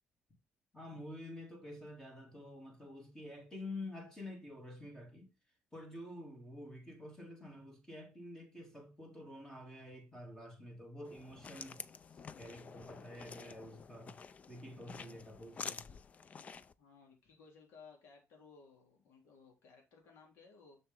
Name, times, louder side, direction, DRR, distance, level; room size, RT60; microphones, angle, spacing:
voice 1, 0.7-5.3 5.7-11.9 12.4-14.2 14.5-15.9, left 1 dB, 10° left, 3.1 m, -49 dB
sound 1, 11.0-16.7, left 6 dB, 35° left, 0.5 m, -49 dB
voice 2, 16.8-20.8, left 5 dB, 80° left, 3.3 m, -59 dB
7.0 x 6.7 x 3.7 m
cardioid pair, 135°, 4 cm